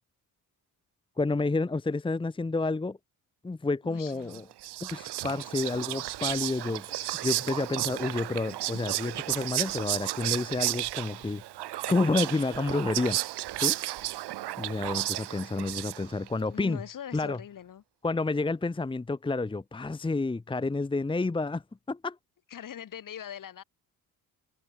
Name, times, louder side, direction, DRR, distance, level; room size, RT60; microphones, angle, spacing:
voice 1, 1.2-3.0 3.4-4.4 4.8-11.4 11.7-13.2 13.6-13.8 14.6-16.8 17.1-17.4 18.0-21.6 21.9-22.2, left 3 dB, 15° left, 1.1 m, -30 dB
voice 2, 3.8-4.5 16.5-17.8 22.5-23.6, left 9 dB, 55° left, 3.6 m, -42 dB
Whispering, 4.3-16.3, right 15 dB, 85° right, 1.4 m, -33 dB
cardioid pair, 135°, 39 cm